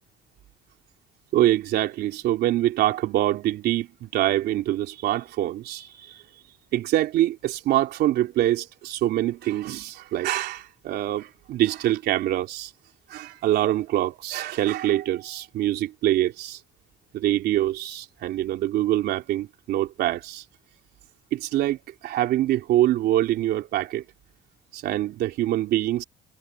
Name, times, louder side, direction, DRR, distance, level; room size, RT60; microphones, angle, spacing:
voice 1, 1.3-6.2 6.7-12.7 13.1-16.6 17.1-20.4 21.3-24.0 24.7-26.0, right 14 dB, 75° right, 3.3 m, -24 dB
cardioid pair, 110°, 17 cm